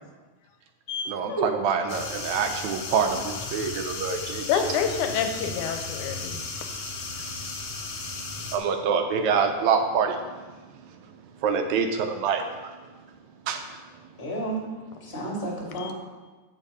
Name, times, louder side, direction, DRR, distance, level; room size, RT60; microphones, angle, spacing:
voice 1, 1.1-4.6 8.5-10.2 11.4-12.7 13.5-13.6, right 6 dB, 75° right, 6 dB, 1.8 m, -26 dB
sound 1, 1.9-8.6, left 4 dB, 60° left, 1.9 m, -35 dB
voice 2, 4.5-6.4 15.8-15.9, left 7 dB, 85° left, 6 dB, 2.2 m, -27 dB
voice 3, 14.2-14.7 15.0-15.9, right 2 dB, 20° left, -2 dB, 1.9 m, -31 dB
8.9 x 7.3 x 4.1 m, 1.3 s
omnidirectional pair, 3.6 m